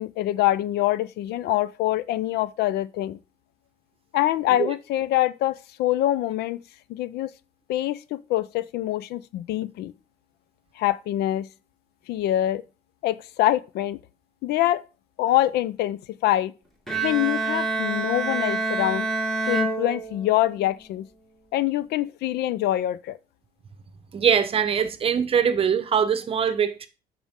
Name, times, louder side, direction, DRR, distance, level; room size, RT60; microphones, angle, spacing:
voice 1, 0.0-3.2 4.1-6.6 6.9-7.3 7.7-9.9 10.8-11.5 12.1-12.6 13.0-14.0 14.4-14.8 15.2-16.5 17.0-19.1 19.5-21.1 21.5-23.2, left 14 dB, 85° left, 0.5 m, -25 dB
Bowed string instrument, 16.9-20.6, right 3 dB, ahead, 1.8 m, -27 dB
voice 2, 24.1-26.9, right 7 dB, 35° right, 0.9 m, -22 dB
9.4 x 6.1 x 3.6 m
cardioid pair, 135°, 16 cm